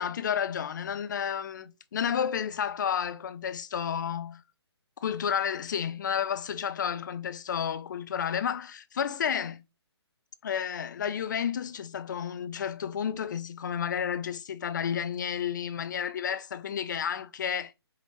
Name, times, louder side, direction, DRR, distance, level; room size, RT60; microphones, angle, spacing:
voice 1, 0.0-4.4 5.0-9.6 10.4-17.8, left 8 dB, 45° left, 0.4 m, -31 dB
4.8 x 2.9 x 2.8 m
figure-of-eight pair, 135°, 14 cm